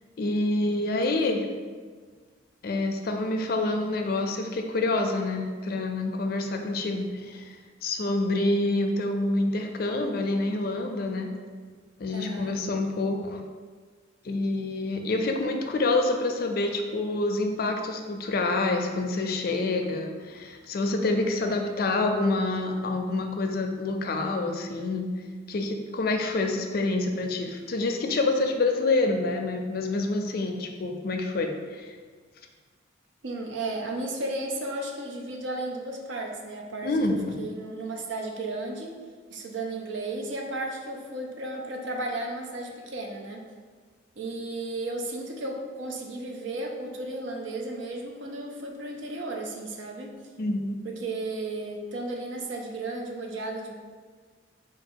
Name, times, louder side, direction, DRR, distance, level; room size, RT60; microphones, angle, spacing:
voice 1, 0.2-1.4 2.6-11.3 12.0-13.4 14.2-25.1 25.5-31.9 36.8-37.4 50.4-50.8, left 2 dB, 50° left, 4 dB, 0.4 m, -27 dB
voice 2, 0.9-1.3 12.1-12.5 33.2-38.9 39.3-43.5 44.2-50.1 50.8-53.7, right 2 dB, 75° right, 2 dB, 0.6 m, -34 dB
4.0 x 2.4 x 4.5 m, 1.5 s
head